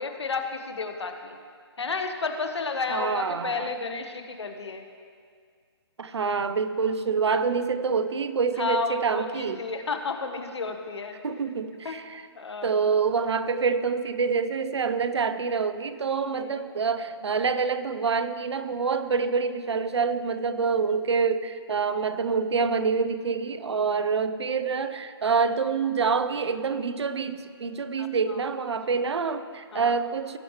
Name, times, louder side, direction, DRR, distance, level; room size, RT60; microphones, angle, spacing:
voice 1, 0.0-1.4 1.8-4.8 8.5-11.1 11.8-12.0 12.3-12.7 16.3-16.6 28.0-28.4 28.9-29.0 29.7-30.0, left 4 dB, 85° left, 6 dB, 1.3 m, -32 dB
voice 2, 2.9-3.7 6.0-9.6 11.2-12.2 12.6-30.4, right 5 dB, 80° right, 12 dB, 0.7 m, -26 dB
18.0 x 7.2 x 3.2 m, 2.1 s
hypercardioid pair, 150°, 14 cm